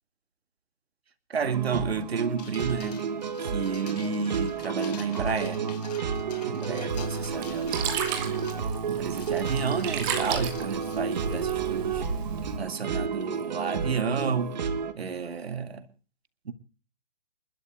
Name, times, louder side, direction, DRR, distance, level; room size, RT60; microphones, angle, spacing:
voice 1, 1.3-3.0 3.4-5.6 6.4-8.1 8.9-12.0 12.6-14.5 14.9-15.8 16.5-16.6, right 6 dB, 85° right, 10 dB, 2.2 m, -31 dB
sound 1, 1.4-14.9, right 6 dB, 45° right, 1.9 m, -31 dB
sound 2, 2.4-11.9, left 8 dB, 40° left, 3.3 m, -48 dB
Sink (filling or washing), 6.9-12.6, right 6 dB, 20° right, 2.5 m, -35 dB
29.5 x 13.0 x 2.4 m, 0.35 s
hypercardioid pair, 165°, 30 cm